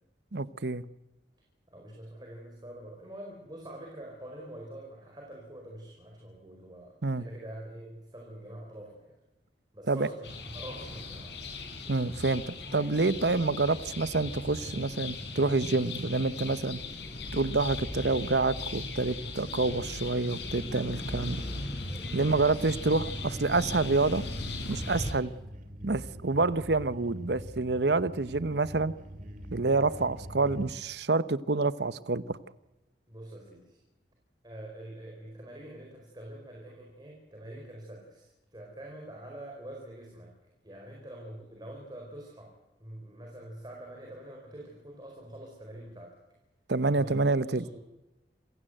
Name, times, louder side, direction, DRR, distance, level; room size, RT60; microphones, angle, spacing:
voice 1, 0.3-0.8 7.0-7.2 9.9-10.1 11.9-16.8 17.3-21.4 22.1-24.2 24.7-25.3 25.8-28.9 29.5-32.4 46.7-47.6, right 3 dB, 70° right, 16 dB, 1.0 m, -27 dB
voice 2, 1.7-9.1 9.7-11.3 22.2-22.9 24.8-25.1 33.1-33.8 34.4-40.3 40.6-42.5 42.8-46.1 46.9-47.2 47.5-47.8, right 1 dB, 25° right, 0 dB, 4.6 m, -45 dB
sound 1, 10.2-25.1, left 2 dB, 70° left, 5.1 m, -38 dB
Subway metro underground, 21.3-25.4, equal, ahead, 2.9 m, -53 dB
sound 2, 22.2-30.7, equal, 45° right, 2.9 m, -45 dB
27.5 x 16.5 x 7.9 m, 1.0 s
head